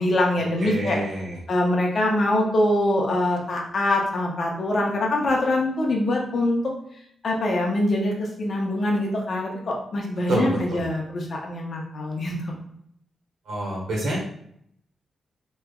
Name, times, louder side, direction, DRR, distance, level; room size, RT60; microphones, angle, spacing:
voice 1, 0.0-1.0 1.5-6.7 7.2-12.5, left 1 dB, 55° left, -1 dB, 0.8 m, -24 dB
voice 2, 0.6-1.4 10.3-10.8 13.4-14.2, right 1 dB, 85° right, -4 dB, 1.4 m, -27 dB
3.4 x 3.1 x 2.3 m, 0.69 s
cardioid pair, 65°, 0 cm